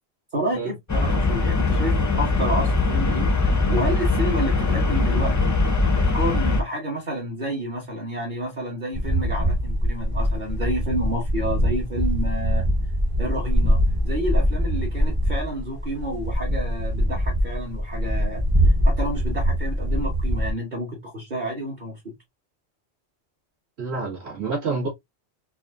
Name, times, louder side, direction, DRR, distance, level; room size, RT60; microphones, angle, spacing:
voice 1, 0.3-3.3 3.7-5.6 5.9-12.7 13.2-18.5 18.8-22.0, right 1 dB, 45° right, 1.2 m, -30 dB
sound 1, 0.9-6.6, left 3 dB, 30° left, 0.3 m, -21 dB
sound 2, 8.9-20.5, equal, 25° right, 0.7 m, -23 dB
voice 2, 23.8-24.9, right 4 dB, 75° right, 2.0 m, -28 dB
4.1 x 2.5 x 2.3 m
omnidirectional pair, 1.1 m